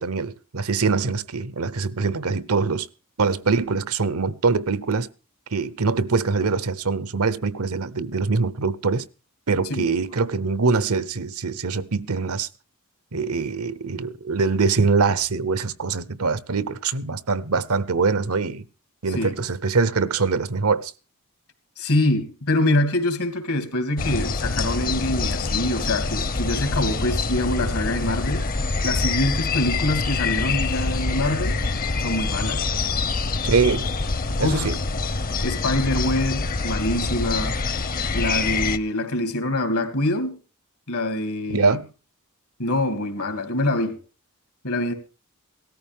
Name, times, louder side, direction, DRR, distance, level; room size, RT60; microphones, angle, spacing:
voice 1, 0.0-2.9 3.2-5.1 5.5-9.1 9.5-12.5 13.1-18.7 19.0-20.9 33.4-33.8 34.4-34.8 41.5-41.9, right 4 dB, 80° right, 0.9 m, -23 dB
voice 2, 21.8-28.4 28.8-31.6 32.0-32.7 34.4-34.7 35.4-37.6 38.1-40.4 40.9-41.8 42.6-44.0 44.6-44.9, left 1 dB, 75° left, 2.7 m, -25 dB
sound 1, 24.0-38.8, left 3 dB, 40° left, 0.8 m, -25 dB
17.5 x 13.5 x 3.6 m
head